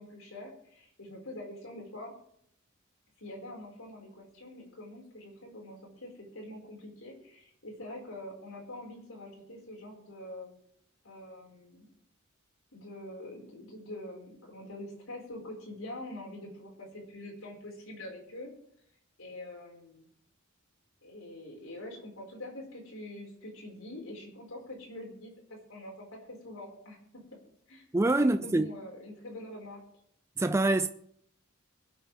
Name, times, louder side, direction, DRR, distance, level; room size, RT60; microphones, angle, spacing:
voice 1, 0.0-2.1 3.2-10.5 11.0-11.9 12.7-18.5 19.2-20.1 21.0-27.0 27.7-27.9 28.2-29.8, left 1 dB, 90° left, 5.4 m, -45 dB
voice 2, 27.9-28.7 30.4-30.9, right 2 dB, 15° right, 0.4 m, -25 dB
24.5 x 8.7 x 3.6 m
head